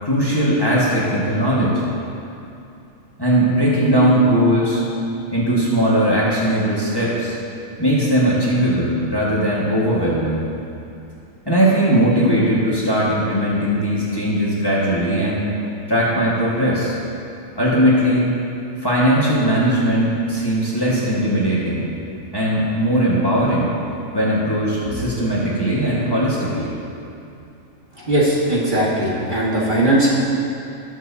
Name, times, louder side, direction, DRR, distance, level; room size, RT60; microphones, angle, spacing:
voice 1, 0.0-1.8 3.2-4.8 5.3-7.4 7.8-10.4 11.4-15.5 15.9-16.9 17.5-18.2 18.8-21.9 22.3-23.7 24.1-26.7, equal, 15° left, -7 dB, 1.6 m, -19 dB
voice 2, 28.0-30.1, right 1 dB, 35° right, -7 dB, 1.7 m, -18 dB
19.0 x 7.2 x 2.8 m, 2.7 s
omnidirectional pair, 1.5 m